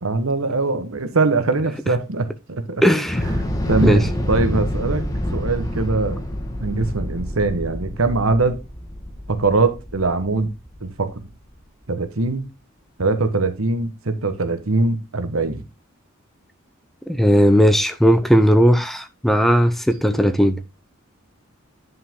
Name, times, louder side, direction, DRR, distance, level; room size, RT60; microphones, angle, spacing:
voice 1, 0.0-2.8 3.7-5.0 5.3-6.2 6.6-8.6 9.3-10.5 10.8-11.2 11.9-12.5 13.0-15.6, right 3 dB, 85° right, 1.2 m, -22 dB
voice 2, 2.8-3.2 3.8-4.0 17.1-20.6, equal, ahead, 0.5 m, -16 dB
Thunder / Explosion, 3.0-11.2, equal, 15° left, 1.5 m, -27 dB
9.7 x 5.6 x 3.7 m
head